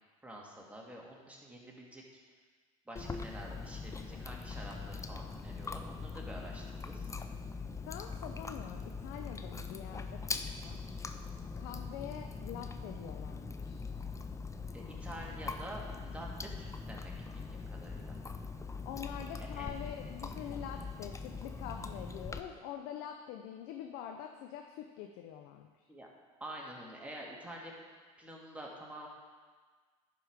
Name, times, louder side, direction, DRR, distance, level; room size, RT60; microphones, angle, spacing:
voice 1, 0.2-2.0 2.9-7.1 14.7-18.2 19.4-19.7 25.9-26.1 26.4-27.7 28.2-29.1, right 1 dB, 5° right, -3 dB, 2.2 m, -48 dB
Chewing mastication, 3.0-22.4, left 4 dB, 15° left, 0.6 m, -42 dB
voice 2, 7.9-10.8 11.6-13.8 18.9-25.9, left 9 dB, 70° left, 4 dB, 0.6 m, -45 dB
11.0 x 4.8 x 4.8 m, 1.5 s
hypercardioid pair, 80°, 18 cm